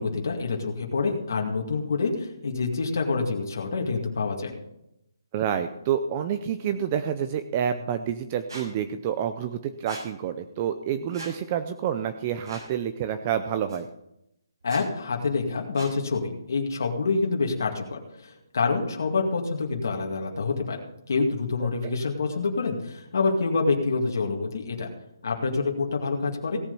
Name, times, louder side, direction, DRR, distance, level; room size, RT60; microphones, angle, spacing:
voice 1, 0.0-4.6 14.6-20.8 21.1-24.9 25.2-26.6, left 4 dB, 50° left, 1 dB, 2.1 m, -27 dB
voice 2, 5.3-13.9 21.6-22.0, right 9 dB, 15° right, 10 dB, 0.4 m, -28 dB
Squeak, 8.5-8.7 9.9-10.0 11.1-11.3 12.4-12.7 13.7-13.8 14.6-14.8 15.7-15.9, right 2 dB, 85° right, 5.7 m, -40 dB
17.0 x 7.4 x 5.4 m, 0.82 s
hypercardioid pair, 180°, 2 cm